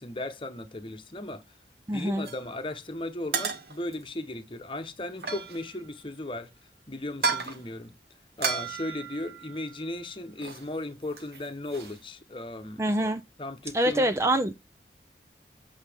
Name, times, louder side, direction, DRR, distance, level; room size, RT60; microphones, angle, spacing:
voice 1, 0.0-1.4 1.9-6.5 6.9-7.9 8.4-12.8 13.4-14.1, left 1 dB, 30° left, 1.0 m, -36 dB
voice 2, 1.9-2.3 12.8-13.2 13.7-14.6, right 1 dB, 15° right, 0.4 m, -25 dB
sound 1, 2.2-2.5 3.3-4.0 5.1-5.9 7.1-7.7 8.4-9.9 10.4-10.7 10.9-12.0, right 4 dB, 60° right, 1.3 m, -33 dB
8.1 x 5.5 x 3.5 m
head